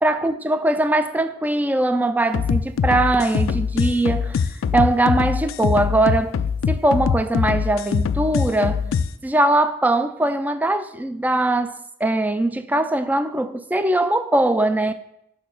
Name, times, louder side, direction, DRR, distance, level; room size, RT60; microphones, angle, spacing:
voice 1, 0.0-4.4 4.7-8.9 9.2-14.9, right 2 dB, 10° right, 0.3 m, -21 dB
sound 1, 2.3-9.1, left 6 dB, 75° left, 0.3 m, -23 dB
5.8 x 4.4 x 6.3 m
head